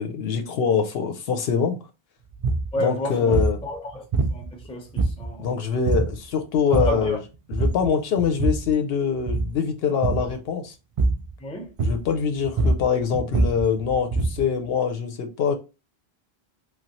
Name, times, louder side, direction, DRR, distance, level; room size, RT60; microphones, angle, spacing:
voice 1, 0.0-1.8 2.8-3.6 5.4-7.2 7.5-10.7 11.8-15.5, left 6 dB, 70° left, 0.8 m, -24 dB
sound 1, 2.3-2.7 3.3-3.6 4.1-4.6 5.0-5.4 5.9-6.2 6.5-7.1 7.5-7.9 8.2-8.7 9.2-9.6 10.0-10.3 11.0-11.3 11.8-12.2 12.4-14.5, right 3 dB, 50° right, 0.4 m, -24 dB
voice 2, 2.7-4.0 4.3-5.6 6.7-7.2 11.4-11.7, equal, 5° left, 0.5 m, -31 dB
3.2 x 2.3 x 2.9 m
omnidirectional pair, 1.1 m